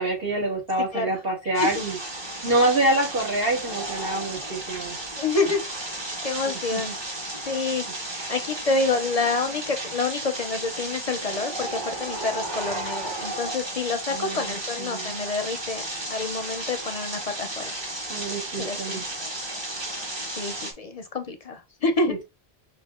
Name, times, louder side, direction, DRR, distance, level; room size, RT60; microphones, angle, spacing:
voice 1, 0.0-2.0 2.4-5.0 6.7-6.8 14.1-15.1 18.1-19.0, right 1 dB, 65° right, 2.1 m, -26 dB
voice 2, 0.9-1.8 5.2-5.6 6.2-7.0 7.5-7.9 8.3-17.8 18.6-19.0 20.3-22.1, left 3 dB, 45° left, 0.6 m, -28 dB
sound 1, 1.5-20.7, right 1 dB, 25° right, 0.9 m, -33 dB
5.2 x 2.4 x 3.5 m
omnidirectional pair, 1.0 m